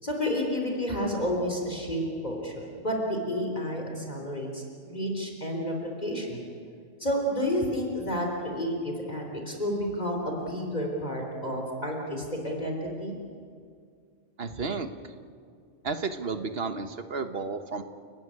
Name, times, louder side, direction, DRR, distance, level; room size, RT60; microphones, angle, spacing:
voice 1, 0.0-6.5 7.0-13.1, equal, 35° left, 1 dB, 3.8 m, -30 dB
voice 2, 14.4-14.9 15.8-17.8, right 4 dB, 55° right, 8 dB, 1.5 m, -32 dB
30.0 x 15.0 x 9.9 m, 2.2 s
omnidirectional pair, 1.3 m